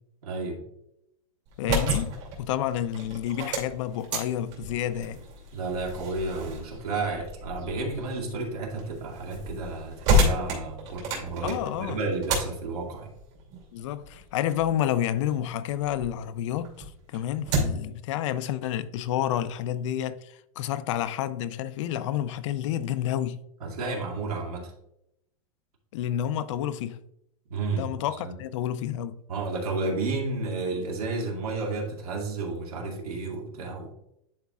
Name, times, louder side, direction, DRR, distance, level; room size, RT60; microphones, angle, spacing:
voice 1, 0.2-0.6 5.5-13.1 23.6-24.7 27.5-27.9 28.2-28.4 29.3-33.9, right 3 dB, 80° right, 2.2 m, -32 dB
sound 1, 1.5-16.2 16.6-18.0, equal, 50° right, 2.7 m, -31 dB
voice 2, 1.6-2.1 2.4-5.2 11.4-12.0 13.7-23.4 25.9-27.0 27.7-29.2, left 11 dB, 55° left, 0.5 m, -29 dB
10.5 x 4.6 x 2.4 m
supercardioid pair, 155°, 19 cm